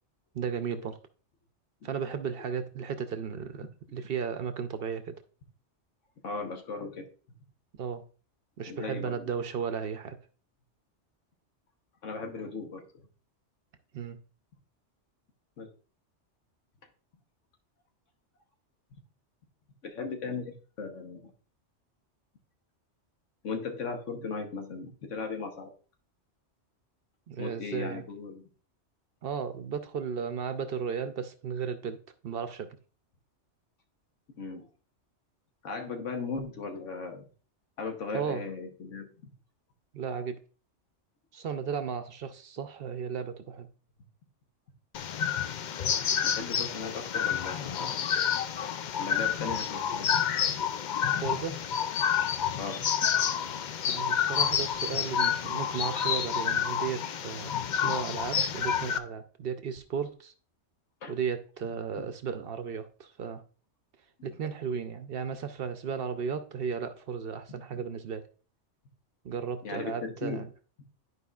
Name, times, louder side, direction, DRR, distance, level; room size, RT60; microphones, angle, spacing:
voice 1, 0.3-1.0 1.8-5.2 7.8-8.0 8.6-10.2 13.9-14.2 27.3-28.0 29.2-32.0 32.2-32.7 38.1-38.4 39.9-40.4 41.3-43.7 51.2-51.6 53.9-57.5 57.8-60.3 61.1-63.4 64.2-68.3 69.2-70.5, right 6 dB, 60° right, 0.7 m, -35 dB
voice 2, 6.2-7.1 8.7-9.3 12.0-12.8 15.6-15.7 19.8-21.3 23.4-25.7 27.4-28.5 34.4-34.6 35.6-37.2 37.8-39.1 46.2-48.0 49.0-50.2 52.5-52.8 54.1-54.2 61.0-61.1 62.0-62.1 67.7-67.8 69.6-70.4, left 4 dB, 90° left, 1.4 m, -37 dB
sound 1, 44.9-59.0, left 8 dB, 60° left, 0.5 m, -29 dB
11.5 x 4.7 x 2.4 m
omnidirectional pair, 1.2 m